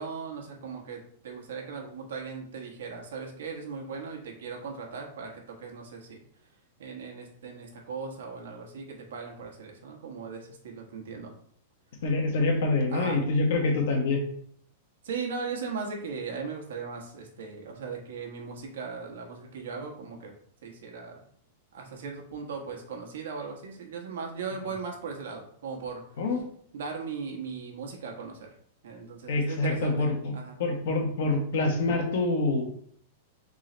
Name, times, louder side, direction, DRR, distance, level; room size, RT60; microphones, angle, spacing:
voice 1, 0.0-6.2 6.8-11.3 12.9-13.2 15.0-20.3 20.6-21.3 21.7-26.0 26.7-28.5 28.8-30.6, right 5 dB, 85° right, 1 dB, 1.2 m, -38 dB
voice 2, 12.0-14.2 26.2-26.4 29.3-30.3 30.6-32.6, left 3 dB, 65° left, 2 dB, 1.1 m, -26 dB
3.7 x 3.2 x 3.9 m, 0.63 s
supercardioid pair, 165°, 0 cm